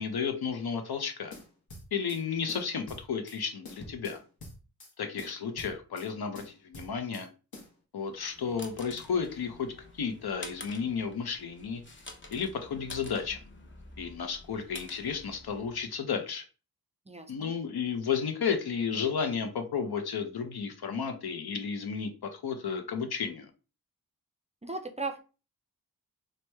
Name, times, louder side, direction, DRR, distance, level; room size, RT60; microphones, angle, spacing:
voice 1, 0.0-1.3 1.9-4.2 5.0-7.3 7.9-11.8 12.3-13.4 14.0-16.4 17.3-23.5, left 6 dB, 80° left, 6 dB, 0.6 m, -33 dB
sound 1, 1.3-2.2 2.5-3.4 3.7-4.9 5.2-6.1 6.4-7.3 7.5-7.7, left 2 dB, 65° left, 0.9 m, -47 dB
sound 2, 8.1-15.8, left 2 dB, 30° left, 0.6 m, -49 dB
voice 2, 17.1-17.5 24.6-25.2, right 3 dB, 20° right, 6 dB, 0.3 m, -37 dB
2.9 x 2.1 x 3.3 m, 0.34 s
wide cardioid pair, 65°, 38 cm